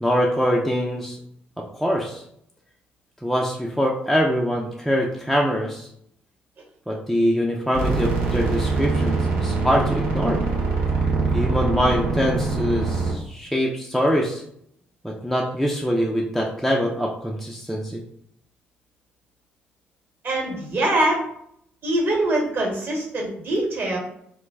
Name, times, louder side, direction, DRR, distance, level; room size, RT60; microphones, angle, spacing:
voice 1, 0.0-1.2 1.6-2.2 3.2-5.9 6.9-10.4 11.3-14.4 15.0-18.0, equal, ahead, -2 dB, 0.4 m, -23 dB
sound 1, 7.7-13.1, right 3 dB, 70° right, 0.6 m, -23 dB
voice 2, 20.2-21.2 21.8-24.0, right 1 dB, 40° right, -1 dB, 1.0 m, -23 dB
2.2 x 2.0 x 3.4 m, 0.71 s
figure-of-eight pair, 45°, 5 cm